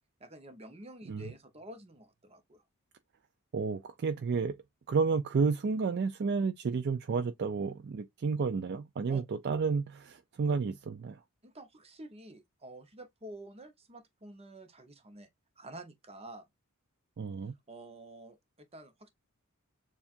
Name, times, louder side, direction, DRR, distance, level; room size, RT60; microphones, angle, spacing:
voice 1, 0.2-2.6 9.1-9.2 11.4-15.3 15.6-16.5 17.7-19.1, right 1 dB, 30° right, 0.8 m, -49 dB
voice 2, 3.5-4.6 4.9-11.2 17.2-17.5, right 5 dB, 50° right, 0.4 m, -31 dB
7.0 x 2.4 x 2.4 m
head